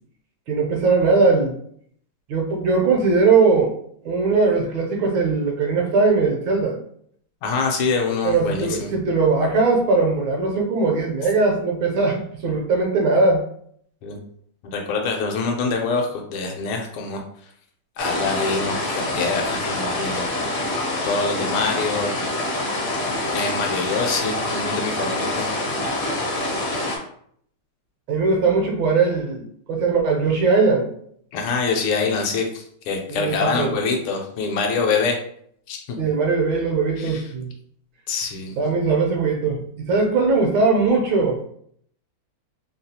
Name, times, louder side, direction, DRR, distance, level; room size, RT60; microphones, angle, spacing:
voice 1, 0.5-1.6 2.3-3.8 4.0-6.8 8.2-13.4 28.1-30.9 33.1-33.7 36.0-37.5 38.6-41.5, right 4 dB, 70° right, 1 dB, 1.3 m, -20 dB
voice 2, 7.4-8.9 14.0-14.2 14.7-17.2 18.0-20.3 21.0-22.2 23.3-25.5 26.1-26.2 31.3-35.2 35.7-36.0 37.0-37.2 38.1-38.5, left 4 dB, 80° left, 2 dB, 1.4 m, -25 dB
sound 1, 18.0-27.0, left 2 dB, 60° left, 0.9 m, -26 dB
3.5 x 2.3 x 2.7 m, 0.65 s
omnidirectional pair, 2.4 m